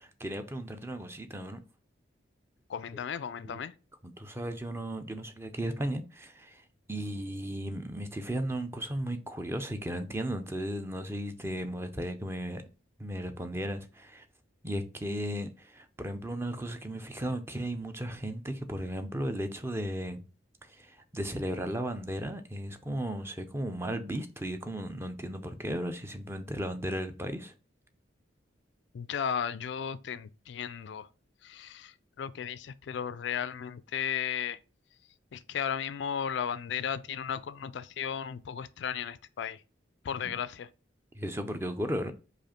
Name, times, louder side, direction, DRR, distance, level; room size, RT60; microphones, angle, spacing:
voice 1, 0.0-1.6 3.4-3.6 4.0-6.6 6.9-12.6 13.0-14.2 14.6-20.2 20.8-27.5 40.2-40.3 41.2-42.1, right 1 dB, 15° right, 0.5 m, -35 dB
voice 2, 2.7-3.7 28.9-31.1 31.4-34.6 35.3-39.6 40.1-40.7, left 8 dB, 65° left, 0.3 m, -35 dB
4.9 x 2.5 x 4.3 m
head